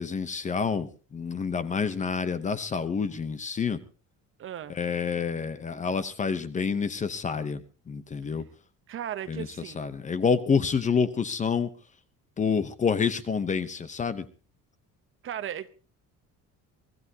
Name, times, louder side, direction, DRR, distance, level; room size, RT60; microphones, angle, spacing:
voice 1, 0.0-3.8 4.7-8.5 9.3-11.7 12.4-14.2, left 6 dB, 25° left, 0.8 m, -28 dB
voice 2, 4.4-4.8 8.9-9.8 15.2-15.7, right 10 dB, 40° right, 0.8 m, -36 dB
23.5 x 15.0 x 2.8 m
cardioid pair, 160°, 32 cm